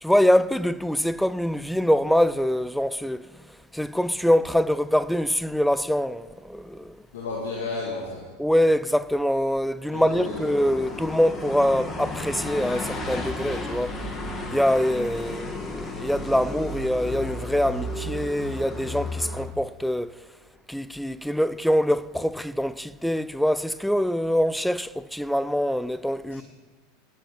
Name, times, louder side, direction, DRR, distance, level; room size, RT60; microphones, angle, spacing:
voice 1, 0.0-3.3 3.7-7.0 8.4-14.0 14.5-20.2 20.7-26.4, equal, ahead, 0.4 m, -24 dB
voice 2, 7.1-8.2 9.9-10.5 26.3-26.4, left 3 dB, 75° left, 1.9 m, -32 dB
sound 1, 10.0-19.5, left 2 dB, 25° left, 1.8 m, -33 dB
18.0 x 8.6 x 3.2 m
hypercardioid pair, 85°, 0 cm